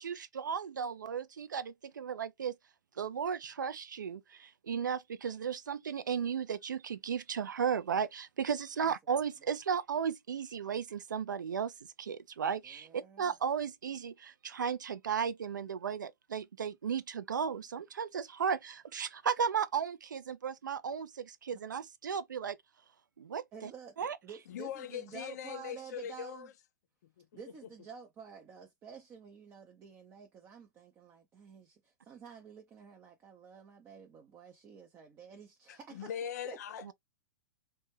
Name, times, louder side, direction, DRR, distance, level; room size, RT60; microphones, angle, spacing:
voice 1, 0.0-2.6 3.0-11.7 12.0-22.6 23.2-23.7 24.0-24.2 36.9-37.0, right 7 dB, 80° right, 0.4 m, -35 dB
voice 2, 8.8-9.2 12.6-13.4 21.5-21.6 23.5-26.5 27.3-36.2 36.4-36.6, right 6 dB, 25° right, 0.5 m, -51 dB
voice 3, 24.5-26.5 27.0-27.3 35.7-36.9, left 9 dB, 60° left, 0.4 m, -41 dB
2.2 x 2.2 x 3.1 m
hypercardioid pair, 110°, 10 cm